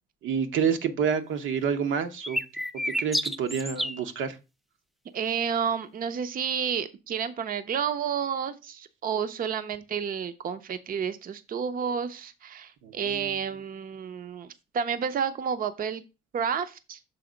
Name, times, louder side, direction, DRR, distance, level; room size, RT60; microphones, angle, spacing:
voice 1, 0.2-2.4 2.8-4.4 12.8-13.3, right 7 dB, 80° right, 0.9 m, -28 dB
sound 1, 2.2-4.0, equal, ahead, 0.3 m, -29 dB
voice 2, 5.1-14.5 14.7-16.0 16.3-17.0, right 7 dB, 45° right, 0.6 m, -30 dB
6.9 x 3.5 x 5.0 m
cardioid pair, 90°, 20 cm